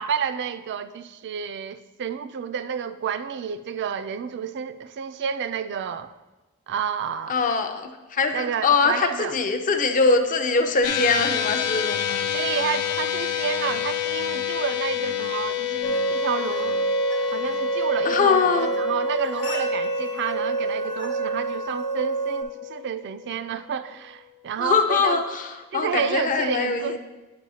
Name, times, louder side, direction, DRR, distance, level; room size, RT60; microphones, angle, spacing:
voice 1, 0.0-6.1 6.7-7.4 8.3-9.3 12.3-16.9 17.3-25.2 25.7-27.0, right 7 dB, 50° right, 0.3 m, -30 dB
voice 2, 7.3-12.2 18.0-18.7 24.6-27.0, left 4 dB, 35° left, 0.5 m, -22 dB
sound 1, 10.8-23.4, left 11 dB, 90° left, 0.5 m, -29 dB
sound 2, 15.8-22.4, right 4 dB, 50° left, 1.1 m, -28 dB
9.7 x 5.3 x 2.8 m
head